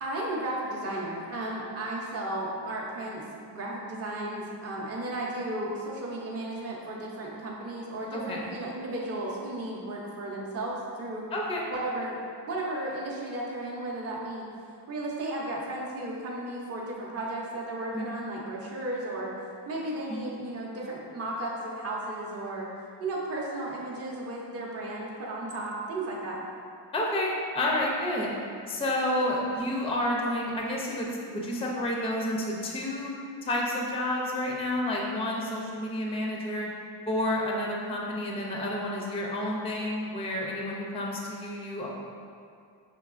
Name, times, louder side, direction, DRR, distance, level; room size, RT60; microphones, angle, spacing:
voice 1, 0.0-11.3 11.7-14.5 14.9-19.4 19.7-22.7 23.0-26.4, right 1 dB, 35° right, -3 dB, 0.6 m, -34 dB
voice 2, 8.1-8.4 11.3-11.7 17.9-18.1 20.1-20.2 26.9-28.3 28.7-33.1 33.4-36.7 37.1-41.9, left 1 dB, 15° left, -2 dB, 0.4 m, -30 dB
5.8 x 3.0 x 2.4 m, 2.3 s
wide cardioid pair, 155°, 45 cm